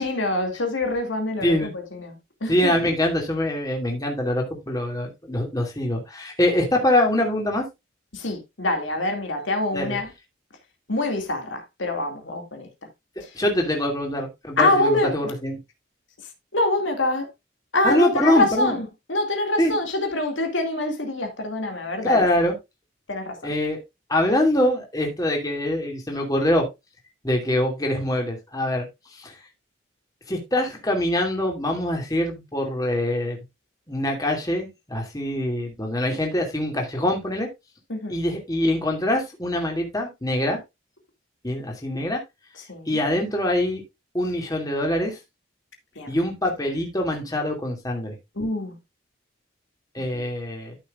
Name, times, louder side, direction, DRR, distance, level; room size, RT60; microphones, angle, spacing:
voice 1, 0.0-2.7 8.1-10.1 10.9-12.7 13.2-13.3 14.6-15.2 16.5-17.3 17.7-22.2 23.1-23.5 37.9-38.2 42.7-43.0 46.0-46.1 48.4-48.8 50.1-50.3, left 2 dB, 70° left, 2.4 m, -25 dB
voice 2, 2.5-7.7 9.7-10.0 13.3-15.6 17.8-18.8 19.6-19.7 22.0-22.5 23.4-23.8 24.1-26.7 27.2-29.4 30.3-33.4 33.9-37.5 38.1-40.6 41.4-42.2 42.9-43.8 44.1-45.2 46.1-48.2 49.9-50.8, left 1 dB, 20° left, 2.6 m, -24 dB
13.5 x 6.5 x 2.5 m
head